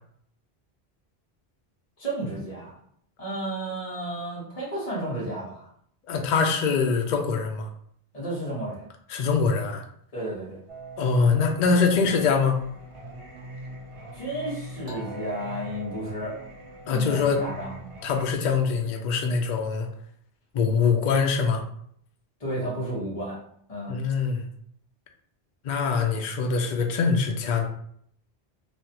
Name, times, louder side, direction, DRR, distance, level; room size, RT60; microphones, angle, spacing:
voice 1, 2.0-2.7 3.2-5.7 8.1-8.8 10.1-10.6 14.1-16.4 16.9-17.8 22.4-23.4 23.7-24.0, right 1 dB, 35° left, -6 dB, 1.3 m, -32 dB
voice 2, 6.1-7.7 9.1-9.8 11.0-12.6 16.9-17.4 18.0-19.9 20.5-21.6 23.9-24.4 25.6-27.7, left 5 dB, 55° left, 3 dB, 0.5 m, -23 dB
Singing, 10.7-18.4, right 1 dB, 45° right, 0.4 m, -41 dB
3.2 x 2.3 x 2.8 m, 0.67 s
omnidirectional pair, 1.1 m